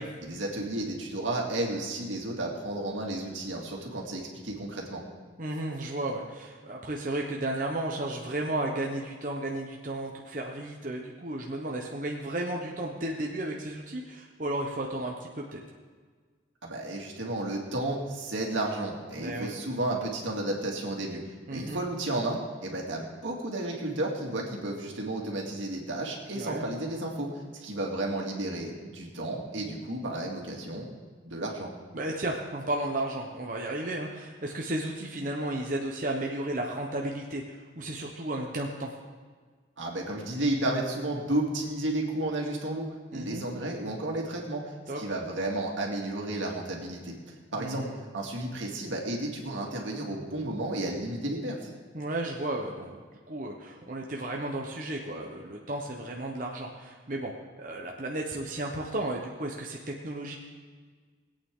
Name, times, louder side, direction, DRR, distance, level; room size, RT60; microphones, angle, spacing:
voice 1, 0.2-5.0 16.6-21.2 21.5-27.3 27.5-30.9 31.2-31.7 39.8-44.6 45.0-47.1 47.5-47.9 48.1-51.7, right 1 dB, 80° right, -1 dB, 2.3 m, -32 dB
voice 2, 5.4-15.6 19.2-19.5 21.5-21.8 26.3-26.6 31.9-38.9 43.1-43.4 44.9-45.0 47.6-48.0 51.9-53.0 53.3-60.4, right 1 dB, 45° right, -1 dB, 1.0 m, -33 dB
20.5 x 8.8 x 3.8 m, 1.5 s
head